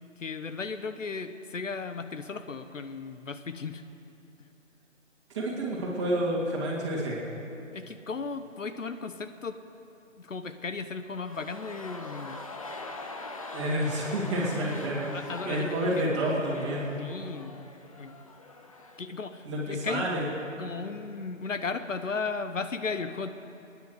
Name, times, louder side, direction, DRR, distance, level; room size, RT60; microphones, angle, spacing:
voice 1, 0.2-3.8 7.7-9.6 10.2-12.4 15.1-15.7 16.0-16.1 17.0-17.6 18.0-18.1 19.0-20.1 20.6-23.3, left 4 dB, 75° left, 10 dB, 1.0 m, -35 dB
voice 2, 5.3-7.3 13.5-15.1 15.4-17.0 19.4-20.2, right 1 dB, 20° right, -5 dB, 2.8 m, -29 dB
sound 1, 11.1-19.2 19.4-19.5, left 2 dB, 25° left, 0.7 m, -43 dB
27.5 x 10.0 x 4.9 m, 2.8 s
figure-of-eight pair, 155°, 39 cm